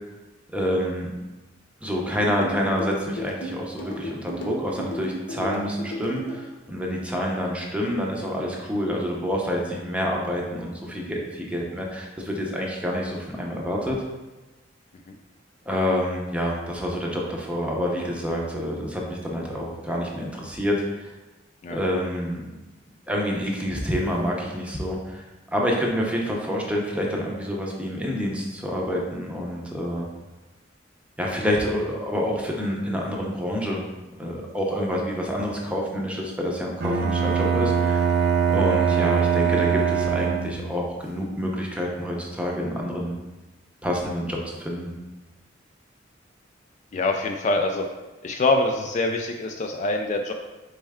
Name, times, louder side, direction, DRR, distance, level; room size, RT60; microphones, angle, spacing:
voice 1, 0.5-1.1 1.8-14.0 15.7-21.1 21.7-22.4 23.1-25.2 25.5-30.1 31.2-33.8 34.2-38.1 38.5-43.2 43.8-44.9, equal, 5° right, -2 dB, 0.6 m, -27 dB
sound 1, 2.4-6.4, equal, 65° left, 0.7 m, -34 dB
Bowed string instrument, 36.8-40.8, right 7 dB, 60° right, 0.5 m, -22 dB
voice 2, 46.9-47.9 48.2-50.3, left 2 dB, 40° left, 3 dB, 0.3 m, -24 dB
4.3 x 3.2 x 3.5 m, 1.1 s
head